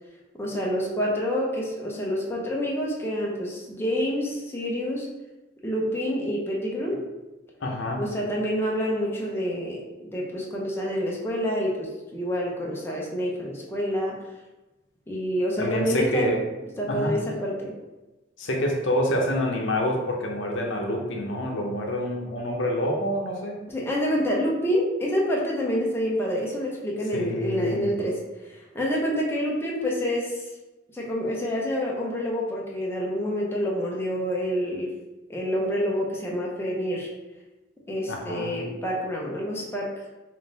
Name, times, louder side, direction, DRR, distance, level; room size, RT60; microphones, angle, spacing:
voice 1, 0.4-5.1 5.6-7.0 8.0-14.2 15.1-16.3 16.8-17.7 23.7-30.5 30.9-34.9 35.3-37.1 37.9-39.9, equal, 15° left, -3 dB, 0.6 m, -27 dB
voice 2, 7.6-8.0 15.6-16.4 16.9-17.2 18.4-23.6 27.1-27.9 38.1-38.5, left 1 dB, 75° left, 1 dB, 0.7 m, -27 dB
3.6 x 2.5 x 4.0 m, 1.1 s
head